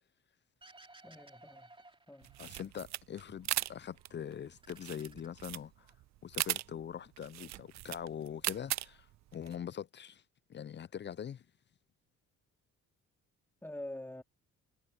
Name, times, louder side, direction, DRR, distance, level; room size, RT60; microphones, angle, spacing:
sound 1, 0.6-2.9 3.3-4.1 4.4-6.0, right 2 dB, 15° right, 3.1 m, -59 dB
voice 1, 1.0-1.7 2.1-2.3 13.6-14.2, left 1 dB, 5° left, 2.5 m, -45 dB
sound 2, 2.2-9.6, right 15 dB, 65° right, 0.5 m, -39 dB
voice 2, 2.4-5.9 6.2-10.2 10.5-11.5, left 8 dB, 35° left, 0.5 m, -43 dB
cardioid pair, 90°, 30 cm